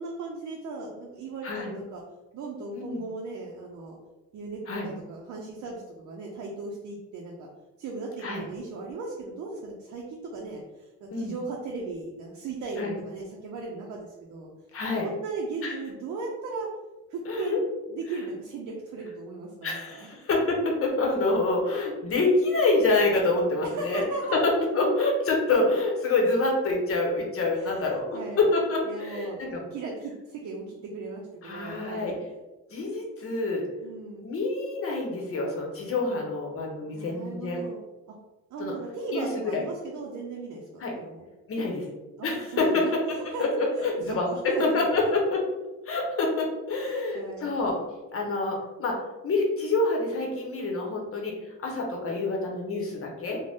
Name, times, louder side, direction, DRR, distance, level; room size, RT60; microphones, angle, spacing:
voice 1, 0.0-2.0 2.3-4.0 4.3-7.5 7.8-14.5 15.0-16.7 17.1-17.6 17.9-20.1 23.8-24.4 27.6-28.5 28.8-32.1 33.8-34.3 36.9-37.8 38.5-40.6 40.9-41.2 42.2-43.4 43.8-44.9 46.7-47.5, right 3 dB, 65° right, -1 dB, 0.6 m, -37 dB
voice 2, 2.7-3.0 4.7-4.9 8.2-8.4 11.1-11.3 12.8-12.9 14.7-15.1 15.6-15.7 17.3-17.6 19.6-24.1 24.3-29.6 31.4-32.1 32.7-33.6 34.2-37.6 38.6-38.7 39.1-39.3 40.8-40.9 41.5-41.8 42.2-45.4 45.9-47.8 48.1-49.0 49.2-53.4, left 2 dB, 50° left, 0 dB, 0.9 m, -27 dB
2.5 x 2.2 x 3.4 m, 1.1 s
cardioid pair, 90°, 30 cm